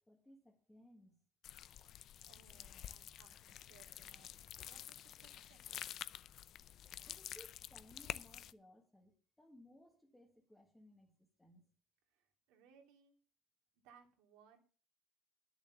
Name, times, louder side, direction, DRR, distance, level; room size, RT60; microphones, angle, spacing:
voice 1, 0.1-1.2 7.0-11.7, left 1 dB, 5° left, 1.4 m, -62 dB
sound 1, 1.4-8.5, left 11 dB, 45° left, 0.4 m, -49 dB
voice 2, 1.6-5.9 12.1-13.2 13.7-14.6, right 7 dB, 80° right, 2.8 m, -67 dB
11.0 x 7.0 x 7.0 m
cardioid pair, 170°, 0 cm